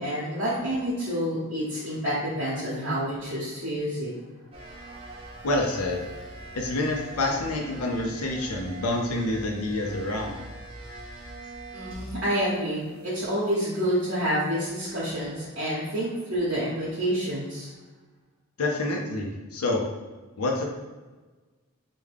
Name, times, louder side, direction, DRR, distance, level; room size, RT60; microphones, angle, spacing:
voice 1, 0.0-4.1 11.7-17.7, equal, 55° right, -9 dB, 0.8 m, -28 dB
sound 1, 4.5-12.4 12.7-14.2, right 2 dB, 25° right, 0.5 m, -43 dB
voice 2, 5.4-6.0 6.5-10.4 18.6-19.8 20.4-20.6, left 2 dB, 80° left, 1 dB, 0.5 m, -27 dB
3.5 x 2.2 x 3.3 m, 1.3 s
head